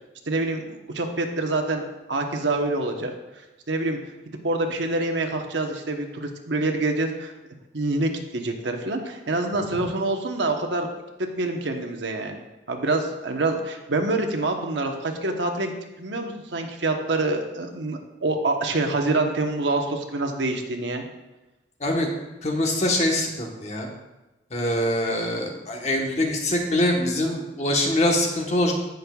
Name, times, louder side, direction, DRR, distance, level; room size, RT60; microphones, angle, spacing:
voice 1, 0.3-3.1 3.7-4.0 4.4-7.3 7.7-10.9 11.3-15.7 16.0-21.0, right 2 dB, 85° right, 3 dB, 1.1 m, -26 dB
voice 2, 22.4-23.9 24.5-28.7, left 1 dB, 35° left, 1 dB, 1.3 m, -24 dB
16.0 x 6.5 x 2.4 m, 1.0 s
head